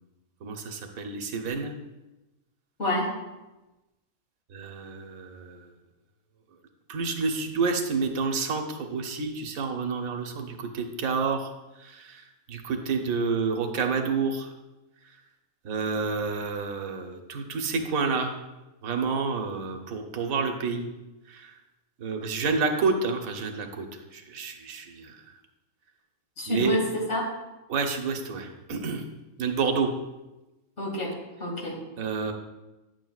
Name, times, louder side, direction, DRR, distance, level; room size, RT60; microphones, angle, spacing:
voice 1, 0.4-1.7 4.5-5.7 6.9-11.5 11.8-12.2 12.5-14.5 15.6-18.4 18.8-20.9 21.3-21.5 22.0-23.9 24.1-25.2 26.5-26.8 27.7-29.0 29.4-29.9 32.0-32.3, right 4 dB, 90° right, 4 dB, 1.3 m, -29 dB
voice 2, 2.8-3.1 26.4-27.3 30.8-31.1 31.4-31.8, left 1 dB, 60° left, -2 dB, 2.0 m, -28 dB
10.0 x 7.6 x 2.3 m, 1.0 s
omnidirectional pair, 1.4 m